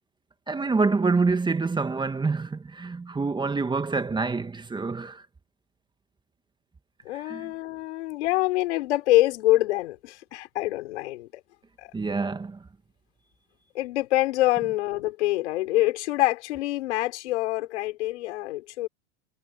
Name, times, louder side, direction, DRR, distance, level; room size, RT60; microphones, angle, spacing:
voice 1, 0.5-5.2 7.1-7.5 11.9-12.7, right 4 dB, 15° right, 1.7 m, -26 dB
voice 2, 7.0-11.4 11.8-11.9 13.7-18.9, left 17 dB, 75° left, 4.7 m, -25 dB
hypercardioid pair, 110°, 34 cm